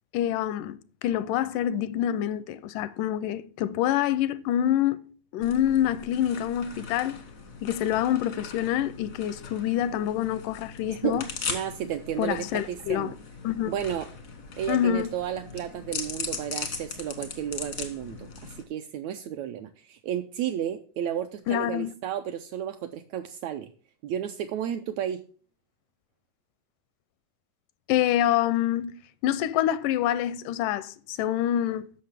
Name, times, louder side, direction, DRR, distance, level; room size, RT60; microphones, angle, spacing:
voice 1, 0.1-0.8 1.0-7.2 7.6-11.2 12.2-13.1 13.4-13.7 14.7-15.1 21.5-21.9 27.9-28.9 29.2-31.9, left 11 dB, 85° left, 2.1 m, -26 dB
sound 1, 5.4-18.6, left 5 dB, 65° left, 0.8 m, -39 dB
voice 2, 11.5-13.1 13.7-14.1 14.6-23.7 24.0-25.2, right 10 dB, 80° right, 1.6 m, -32 dB
13.5 x 5.7 x 3.5 m
omnidirectional pair, 3.7 m